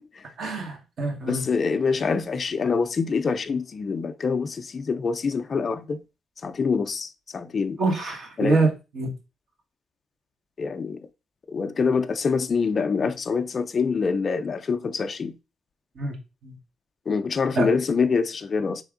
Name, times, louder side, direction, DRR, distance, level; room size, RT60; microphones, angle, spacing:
voice 1, 0.4-1.5 7.8-9.1 16.0-16.1 16.4-16.5 17.5-17.7, right 3 dB, 60° right, 1.5 m, -25 dB
voice 2, 1.3-6.0 6.4-7.1 7.3-7.8 8.4-8.6 10.6-11.0 11.5-15.3 17.1-18.8, left 5 dB, 40° left, 0.4 m, -25 dB
3.4 x 3.3 x 3.7 m
cardioid pair, 90°, 0 cm